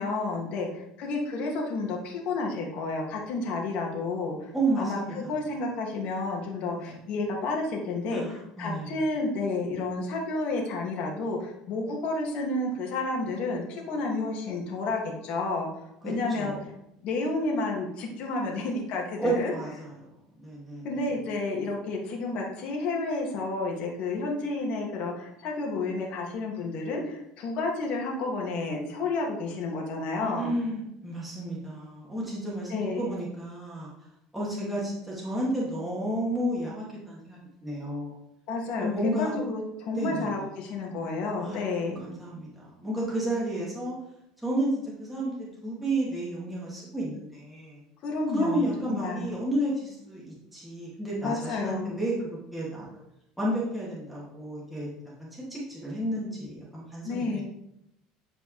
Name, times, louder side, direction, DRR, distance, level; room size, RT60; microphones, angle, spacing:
voice 1, 0.0-4.5 4.8-15.7 16.0-16.6 17.0-19.5 20.8-30.5 32.7-33.1 38.5-38.9 39.2-42.0 48.0-49.3 51.2-51.9 57.0-57.4, left 3 dB, 60° left, 0 dB, 2.2 m, -31 dB
voice 2, 4.5-5.3 6.8-6.9 8.1-9.0 16.0-16.6 19.2-20.1 20.4-21.0 30.2-33.9 34.3-38.1 38.8-39.4 39.9-40.3 41.4-41.6 42.0-42.5 42.8-43.9 44.4-47.8 48.3-53.0 53.4-54.9 55.2-57.4, right 1 dB, ahead, -7 dB, 2.4 m, -31 dB
10.5 x 5.0 x 3.3 m, 0.80 s
supercardioid pair, 125°, 2 cm